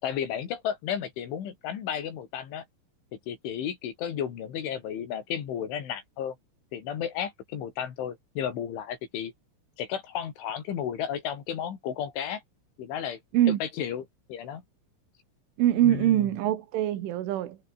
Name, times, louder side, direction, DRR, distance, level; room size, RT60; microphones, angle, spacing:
voice 1, 0.0-2.7 3.1-6.4 6.7-9.3 9.8-12.4 12.8-13.2 13.5-14.6 15.7-16.3, left 9 dB, 70° left, 5.5 m, -33 dB
voice 2, 15.6-17.6, right 12 dB, 75° right, 4.4 m, -23 dB
omnidirectional pair, 5.7 m